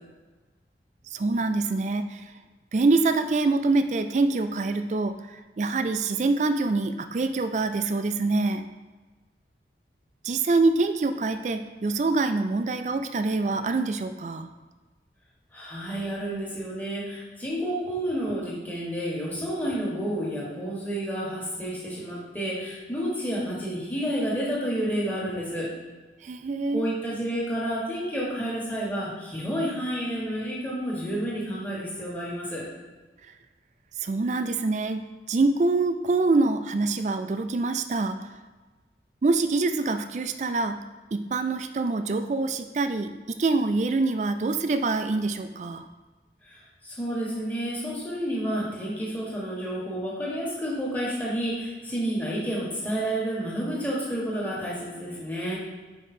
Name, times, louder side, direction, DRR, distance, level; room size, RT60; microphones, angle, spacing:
voice 1, 1.1-2.2 2.7-8.6 10.2-14.5 26.2-26.9 34.0-38.2 39.2-40.8 41.1-45.9, right 3 dB, 40° right, 9 dB, 0.3 m, -25 dB
voice 2, 15.5-25.7 26.7-32.7 46.4-55.6, equal, 10° left, -6 dB, 1.4 m, -30 dB
5.1 x 5.0 x 4.3 m, 1.3 s
head